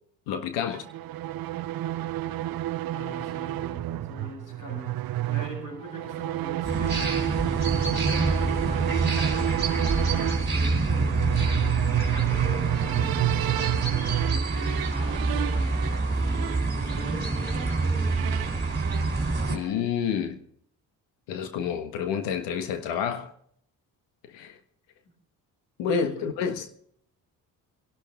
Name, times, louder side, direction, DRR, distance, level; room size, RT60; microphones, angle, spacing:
voice 1, 0.3-0.8 19.5-20.4 21.3-23.3 24.3-24.6 25.8-26.7, left 7 dB, 80° left, 1.5 m, -29 dB
sound 1, 0.7-19.8, right 15 dB, 55° right, 0.6 m, -30 dB
voice 2, 2.9-13.5 13.9-18.4 25.0-25.1 25.8-26.4, equal, 45° left, 7.7 m, -42 dB
sound 2, 6.6-19.6, right 3 dB, 25° right, 3.7 m, -27 dB
23.0 x 12.0 x 3.6 m
hypercardioid pair, 50°, 43 cm